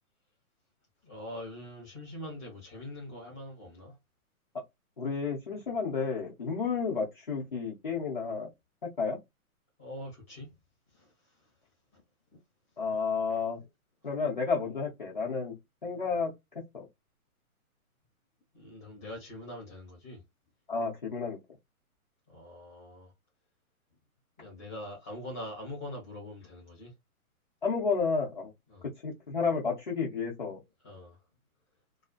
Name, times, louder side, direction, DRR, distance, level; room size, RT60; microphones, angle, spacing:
voice 1, 1.0-3.9 9.8-10.5 10.9-11.1 11.9-12.0 18.5-20.2 22.3-23.1 24.4-26.9 28.7-28.8 30.8-31.2, left 1 dB, 10° left, 0.8 m, -43 dB
voice 2, 5.0-8.5 8.8-9.2 12.8-13.6 14.0-15.5 15.8-16.3 16.7-16.9 20.7-21.4 27.6-28.5 29.0-30.6, left 5 dB, 35° left, 0.5 m, -31 dB
2.4 x 2.3 x 2.4 m
hypercardioid pair, 170°, 44 cm